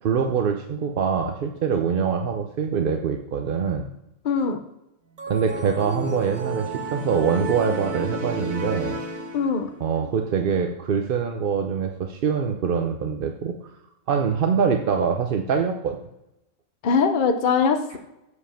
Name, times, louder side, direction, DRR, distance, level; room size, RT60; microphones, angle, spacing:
voice 1, 0.0-3.9 5.3-9.0 9.8-13.7 14.1-16.0 17.9-18.0, right 6 dB, 50° right, 4 dB, 0.7 m, -24 dB
voice 2, 4.2-4.6 9.3-9.7 16.8-18.0, left 5 dB, 50° left, 7 dB, 0.7 m, -21 dB
sound 1, 5.2-9.8, right 2 dB, 85° right, 1.7 m, -32 dB
8.2 x 5.1 x 5.7 m, 0.91 s
omnidirectional pair, 1.4 m